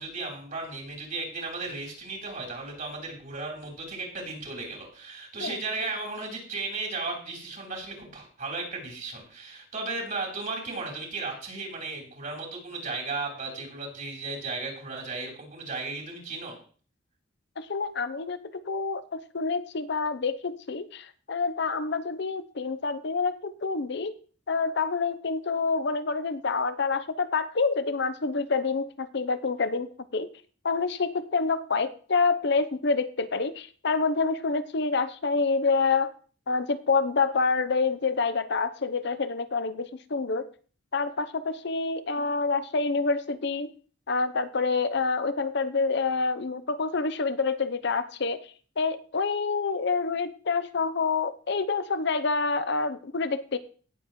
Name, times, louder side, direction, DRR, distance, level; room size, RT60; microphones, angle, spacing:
voice 1, 0.0-16.6, right 3 dB, 45° right, 0 dB, 3.6 m, -35 dB
voice 2, 17.6-24.1 24.5-30.3 30.6-36.1 36.5-40.5 40.9-43.7 44.1-48.4 48.8-53.6, left 4 dB, 65° left, 13 dB, 0.7 m, -27 dB
17.5 x 7.1 x 3.1 m, 0.41 s
head